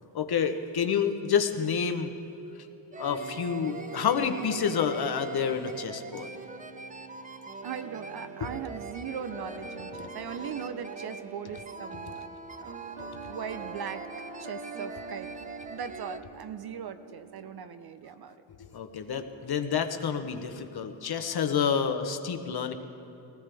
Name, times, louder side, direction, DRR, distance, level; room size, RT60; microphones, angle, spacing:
voice 1, 0.1-2.1 2.5-2.7 3.0-6.3 12.1-12.2 18.6-22.7, left 7 dB, 50° left, 7 dB, 1.0 m, -29 dB
sound 1, 2.9-16.2, right 4 dB, 15° right, 0.5 m, -42 dB
sound 2, 3.0-17.5, right 4 dB, 70° right, 1.9 m, -47 dB
voice 2, 7.6-12.3 12.6-14.1 14.4-18.4, right 7 dB, 50° right, 10 dB, 0.7 m, -39 dB
19.5 x 18.0 x 3.4 m, 2.8 s
cardioid pair, 115°, 50 cm